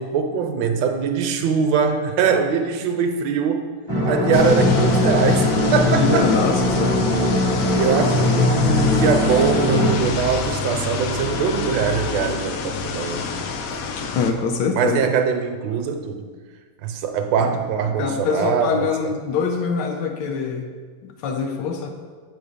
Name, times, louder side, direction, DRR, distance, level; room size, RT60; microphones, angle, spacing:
voice 1, 0.0-3.7 4.0-6.4 7.7-13.4 13.7-13.8 14.7-16.2 16.8-19.1, right 6 dB, 75° right, 6 dB, 1.2 m, -22 dB
sound 1, 3.9-10.0, left 1 dB, 25° right, 0.4 m, -20 dB
sound 2, 4.3-14.3, left 5 dB, 85° left, 0.7 m, -27 dB
voice 2, 5.9-7.0 14.1-15.1 17.4-17.5 18.0-20.7 21.0-21.9, left 5 dB, 70° left, 3 dB, 1.2 m, -23 dB
7.8 x 4.0 x 5.0 m, 1.5 s
omnidirectional pair, 2.1 m